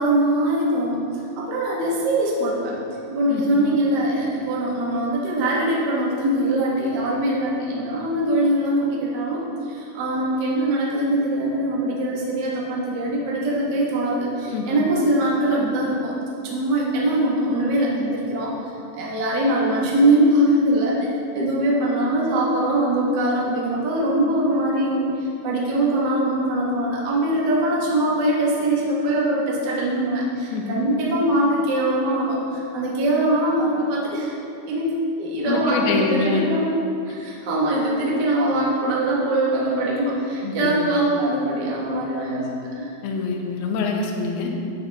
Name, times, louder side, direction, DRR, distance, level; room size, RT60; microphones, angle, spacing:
voice 1, 0.0-2.7 3.1-16.1 16.4-21.0 21.3-34.3 34.7-36.7 37.0-42.5 42.8-42.9, right 1 dB, 90° right, -5 dB, 0.9 m, -22 dB
voice 2, 14.5-14.8 30.5-30.8 35.5-36.4 40.4-40.7 43.0-44.5, left 4 dB, 75° left, 1 dB, 2.8 m, -25 dB
12.0 x 8.3 x 3.6 m, 2.6 s
omnidirectional pair, 5.0 m